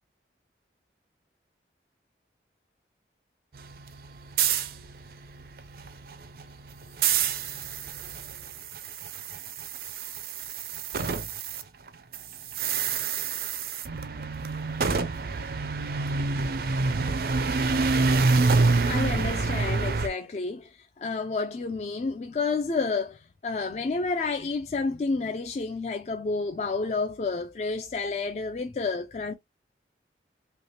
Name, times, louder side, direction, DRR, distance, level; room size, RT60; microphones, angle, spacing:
sound 1, 3.6-11.6 11.9-20.1, right 4 dB, 55° right, 0.4 m, -27 dB
voice 1, 17.6-18.3 18.8-29.3, left 4 dB, 40° left, 0.4 m, -30 dB
3.2 x 2.8 x 2.8 m
head